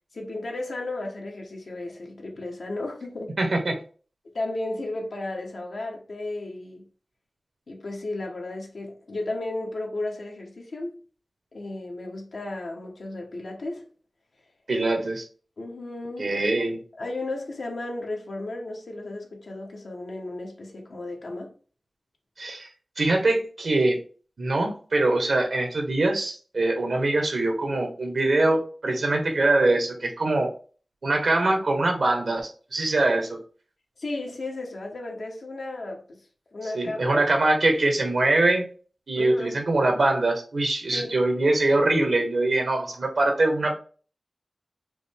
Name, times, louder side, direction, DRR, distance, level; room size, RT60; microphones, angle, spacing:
voice 1, 0.1-3.4 4.2-6.9 7.7-11.0 11.5-13.8 15.6-16.7 17.0-21.5 34.0-36.3 36.5-37.2 39.1-39.6 40.9-41.1, left 2 dB, 85° left, 1.2 m, -34 dB
voice 2, 3.4-3.7 14.7-15.2 16.2-16.8 22.4-22.7 23.0-24.0 24.4-30.5 31.0-33.4 36.7-38.7 39.1-43.8, right 2 dB, 85° right, 1.2 m, -23 dB
4.9 x 2.1 x 3.5 m
wide cardioid pair, 55°, 0 cm